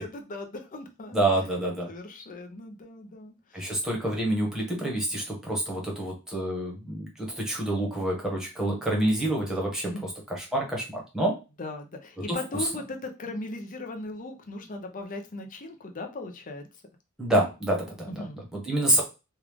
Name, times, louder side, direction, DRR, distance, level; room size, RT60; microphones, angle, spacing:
voice 1, 0.0-1.2 1.8-3.8 9.8-10.1 11.6-16.6 18.1-18.4, left 2 dB, 40° left, 4 dB, 0.6 m, -38 dB
voice 2, 1.1-1.9 3.5-9.9 10.3-11.4 17.2-18.2 18.5-19.0, right 1 dB, ahead, -2 dB, 1.1 m, -27 dB
3.2 x 2.4 x 3.5 m, 0.28 s
head